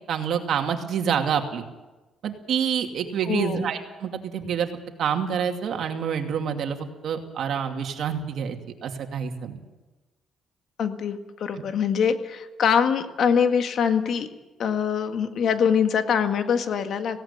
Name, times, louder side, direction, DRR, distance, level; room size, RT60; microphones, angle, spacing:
voice 1, 0.1-1.6 2.2-4.7 5.0-8.6 8.8-9.6 11.6-11.7, right 7 dB, 70° right, 4 dB, 2.5 m, -27 dB
voice 2, 3.3-3.7 10.8-14.3 14.6-17.2, left 7 dB, 65° left, 7 dB, 1.8 m, -23 dB
17.5 x 17.0 x 8.7 m, 1.1 s
cardioid pair, 90°, 0 cm